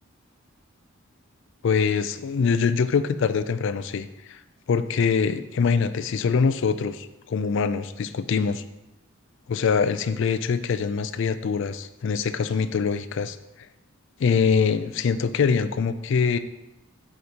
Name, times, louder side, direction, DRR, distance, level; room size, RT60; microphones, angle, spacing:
voice 1, 1.6-4.4 4.7-8.6 9.5-13.4 14.2-16.4, left 5 dB, 65° left, 12 dB, 0.4 m, -24 dB
7.8 x 5.0 x 2.9 m, 0.94 s
head